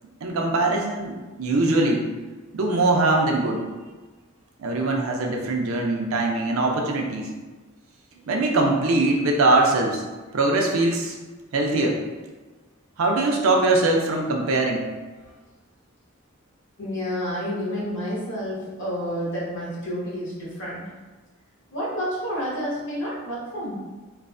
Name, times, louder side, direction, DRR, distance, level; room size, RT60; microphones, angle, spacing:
voice 1, 0.2-2.1 2.5-3.6 4.6-7.3 8.3-10.0 10.3-11.2 11.5-12.0 13.0-14.8, right 2 dB, 80° right, 1 dB, 0.5 m, -22 dB
voice 2, 16.8-20.9 21.7-23.7, equal, 65° left, -7 dB, 1.1 m, -29 dB
3.1 x 2.0 x 2.5 m, 1.3 s
head